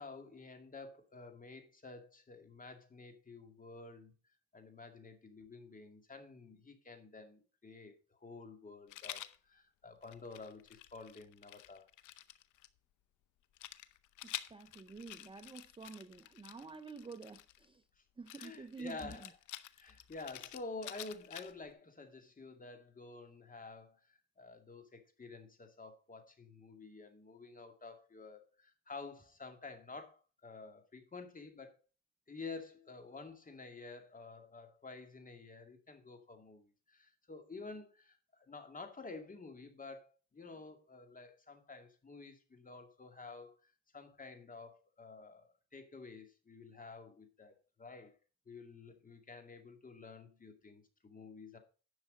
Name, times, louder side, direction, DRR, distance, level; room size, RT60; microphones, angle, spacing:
voice 1, 0.0-4.1 4.5-11.9 18.0-18.1 18.4-19.3 19.8-31.8 32.3-48.2 48.5-51.6, left 3 dB, 25° left, 2.3 m, -50 dB
Rattle, 8.9-9.4 10.0-12.7 13.6-17.6 18.3-21.7, left 14 dB, 80° left, 0.8 m, -49 dB
voice 2, 14.5-17.8 18.2-19.3, right 4 dB, 15° right, 0.7 m, -49 dB
10.5 x 6.3 x 5.0 m
cardioid pair, 90°, 30 cm